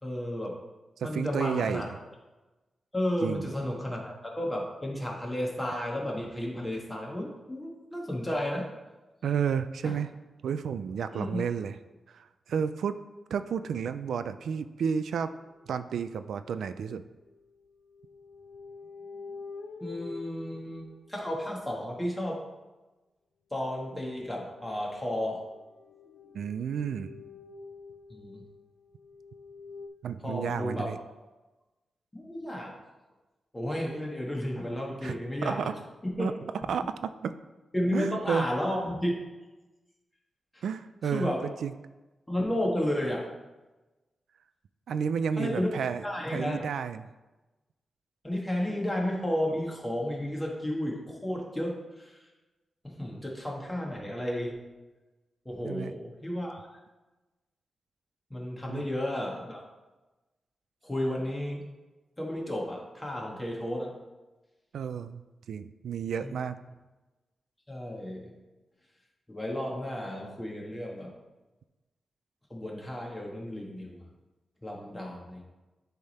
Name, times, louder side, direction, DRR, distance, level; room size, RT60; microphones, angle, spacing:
voice 1, 0.0-0.6 1.0-1.9 2.9-8.7 9.8-10.0 11.1-11.4 19.8-22.4 23.5-25.4 28.1-28.4 30.2-30.9 32.1-32.8 33.5-35.8 36.2-36.3 37.7-39.1 40.5-40.6 41.1-41.4 42.3-43.3 45.4-45.7 46.0-46.7 48.2-52.2 52.8-54.6 55.4-56.7 58.3-59.6 60.8-61.6 62.2-63.9 66.2-66.3 67.7-68.3 69.3-71.1 72.5-74.1 74.6-75.5, left 1 dB, 10° left, -1 dB, 1.4 m, -32 dB
voice 2, 1.0-1.9 3.2-3.5 9.2-10.1 10.4-11.8 12.1-13.0 13.3-15.3 15.7-17.0 26.3-27.2 30.0-31.0 35.0-35.7 36.2-36.3 36.7-37.3 37.9-38.5 40.6-41.3 41.6-41.7 44.9-47.0 55.6-55.9 58.7-58.8 64.7-65.2 65.5-66.6, right 7 dB, 90° right, 11 dB, 0.3 m, -31 dB
sound 1, 17.2-21.7 23.9-29.9, left 4 dB, 75° left, 0.7 m, -47 dB
10.5 x 3.5 x 4.2 m, 1.1 s
wide cardioid pair, 130°, 0 cm